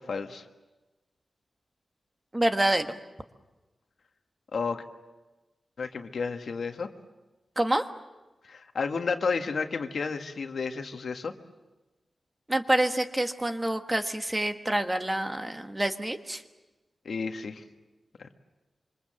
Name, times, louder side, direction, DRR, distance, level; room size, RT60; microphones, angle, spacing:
voice 1, 0.1-0.4 4.5-4.8 5.8-6.9 8.4-11.3 17.1-17.6 18.2-18.3, left 5 dB, 70° left, 6 dB, 1.6 m, -31 dB
voice 2, 2.3-3.0 7.6-7.9 12.5-16.4, right 1 dB, 15° right, 6 dB, 1.4 m, -27 dB
26.5 x 25.0 x 7.6 m, 1.1 s
wide cardioid pair, 135°, 0 cm